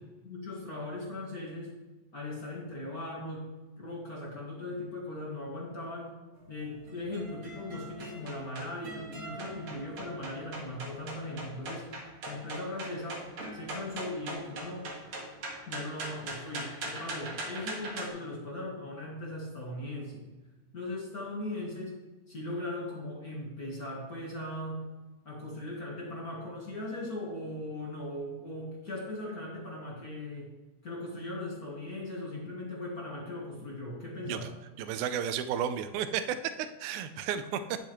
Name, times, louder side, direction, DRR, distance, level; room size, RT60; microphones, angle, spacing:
voice 1, 0.2-1.7 2.1-3.5 3.8-6.1 6.5-11.9 12.3-13.2 13.5-14.9 15.7-20.2 20.7-21.9 22.3-24.9 25.2-30.5 30.8-34.5, left 1 dB, 35° left, -4 dB, 1.6 m, -39 dB
sound 1, 6.4-18.1, right 2 dB, 50° right, 2.1 m, -42 dB
voice 2, 34.8-37.8, right 8 dB, 80° right, 10 dB, 2.0 m, -33 dB
10.5 x 8.0 x 3.1 m, 1.2 s
omnidirectional pair, 3.5 m